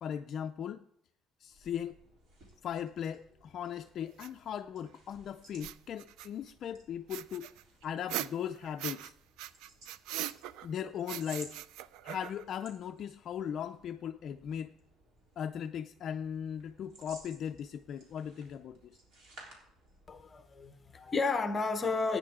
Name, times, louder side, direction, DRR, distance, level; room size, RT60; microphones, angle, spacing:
voice 1, 0.0-0.9 1.4-1.9 2.6-7.5 7.8-9.1 10.6-11.6 12.0-14.7 15.4-19.0, left 8 dB, 40° left, 0.4 m, -38 dB
sound 1, 1.4-20.3, right 2 dB, 50° right, 3.5 m, -58 dB
sound 2, 4.2-4.3 5.5-6.5 7.1-9.1 9.4-10.7 11.1-12.6, right 13 dB, 85° right, 0.4 m, -40 dB
voice 2, 20.1-22.2, left 4 dB, 20° left, 0.8 m, -32 dB
16.5 x 9.4 x 3.7 m
cardioid pair, 170°, 0 cm